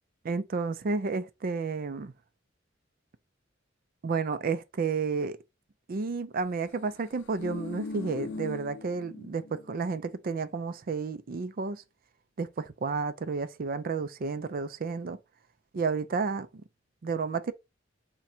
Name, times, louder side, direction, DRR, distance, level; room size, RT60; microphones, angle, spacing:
voice 1, 0.2-2.1 4.0-5.4 5.9-11.8 12.4-15.2 15.7-16.5 17.0-17.5, right 4 dB, 50° right, 0.4 m, -31 dB
sound 1, 7.0-9.7 10.0-10.1, left 3 dB, 70° left, 0.5 m, -40 dB
3.8 x 2.2 x 4.3 m
head